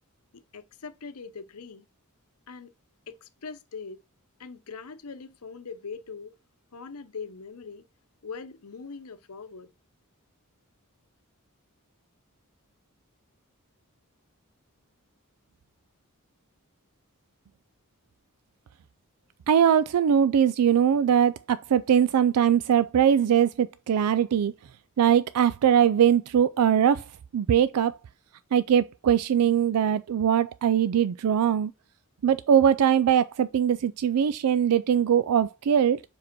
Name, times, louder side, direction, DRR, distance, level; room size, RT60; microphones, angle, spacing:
voice 1, 0.3-1.8 2.5-2.7 3.1-4.0 4.4-6.3 6.7-7.9 8.2-9.7, left 5 dB, 75° left, 0.8 m, -41 dB
voice 2, 19.5-24.5 25.0-27.0 27.3-28.0 28.5-31.7 32.2-36.0, right 8 dB, 80° right, 0.4 m, -21 dB
5.0 x 4.7 x 6.0 m
head